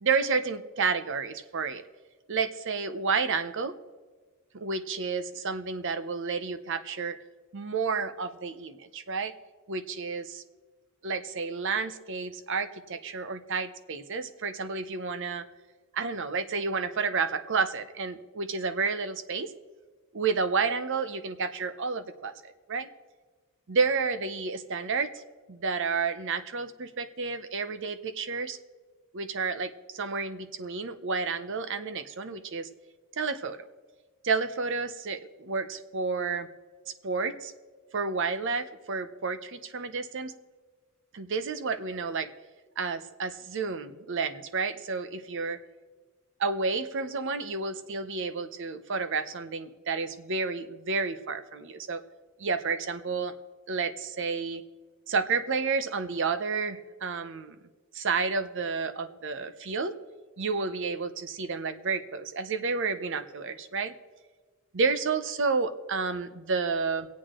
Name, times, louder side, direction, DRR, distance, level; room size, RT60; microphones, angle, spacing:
voice 1, 0.0-1.8 2.3-3.7 4.5-7.2 7.5-9.3 9.7-10.4 11.0-15.4 15.9-19.5 20.1-22.9 23.7-25.1 25.5-28.6 29.1-32.7 33.1-33.7 34.2-36.5 37.0-37.5 37.9-40.3 41.1-42.3 42.8-45.6 46.4-52.0 52.4-53.3 53.7-54.6 55.1-57.6 57.9-59.9 60.4-63.9 64.7-67.1, right 4 dB, 60° right, 11 dB, 0.7 m, -30 dB
24.0 x 8.4 x 3.7 m, 1.4 s
head